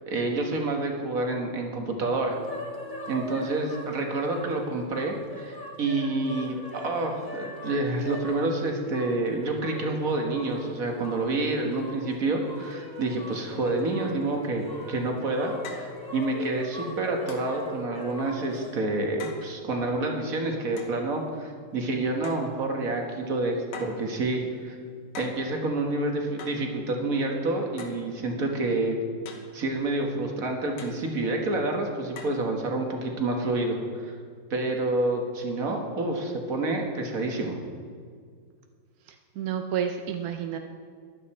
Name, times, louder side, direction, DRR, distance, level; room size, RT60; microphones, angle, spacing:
voice 1, 0.1-2.4 3.1-24.8 25.2-29.0 29.5-33.8 34.0-34.1 34.5-37.6, right 2 dB, 45° right, 2 dB, 1.8 m, -28 dB
sound 1, 2.3-18.7, equal, 10° left, 1.5 m, -40 dB
sound 2, 14.8-14.9 15.6-16.0 17.3-17.6 19.2-19.5 20.8-21.0 22.2-22.6 23.7-24.1 25.1-25.5 26.4-26.7 27.8-28.1 29.3-29.6 30.8-31.0 32.2-32.4, left 5 dB, 85° left, 2.1 m, -42 dB
voice 2, 39.4-40.6, right 8 dB, 65° right, 5 dB, 0.9 m, -29 dB
15.0 x 12.0 x 4.3 m, 2.1 s
omnidirectional pair, 2.3 m